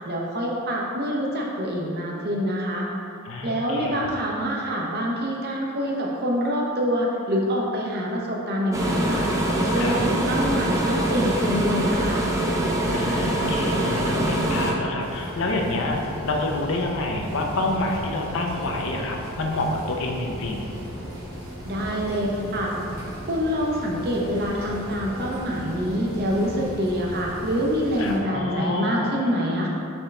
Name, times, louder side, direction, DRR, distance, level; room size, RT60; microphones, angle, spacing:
voice 1, 0.0-2.9 3.4-12.3 21.6-22.7 23.3-29.7, equal, 50° right, -2 dB, 0.7 m, -26 dB
voice 2, 3.3-4.1 9.8-10.0 12.9-20.8 28.0-29.2, left 2 dB, 65° left, 1 dB, 0.5 m, -28 dB
sound 1, 8.7-14.7, right 1 dB, 15° right, 0.5 m, -24 dB
sound 2, 15.0-28.2, equal, 90° right, 1.2 m, -36 dB
4.4 x 3.7 x 3.2 m, 2.6 s
head